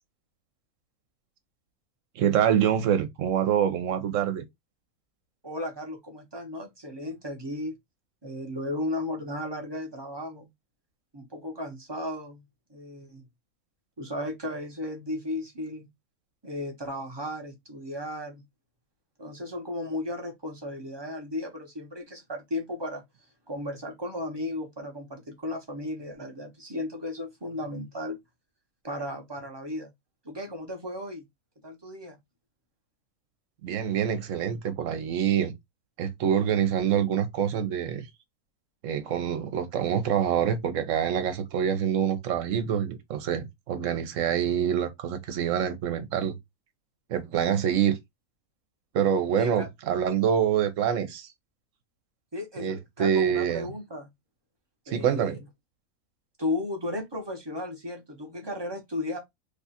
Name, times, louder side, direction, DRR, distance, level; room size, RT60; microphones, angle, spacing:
voice 1, 2.2-4.4 33.6-35.5 36.0-38.1 38.8-46.4 47.1-48.0 48.9-51.3 52.6-53.7 54.9-55.4, right 9 dB, 70° right, 1.1 m, -26 dB
voice 2, 5.4-7.8 8.2-10.5 11.1-12.4 12.7-13.2 14.0-15.9 16.4-18.4 19.2-23.0 23.5-28.2 28.8-29.9 30.2-31.2 31.6-32.2 49.3-49.7 52.3-54.1 54.9-55.4 56.4-59.2, left 1 dB, 20° right, 0.8 m, -35 dB
3.2 x 2.4 x 4.1 m
omnidirectional pair, 1.5 m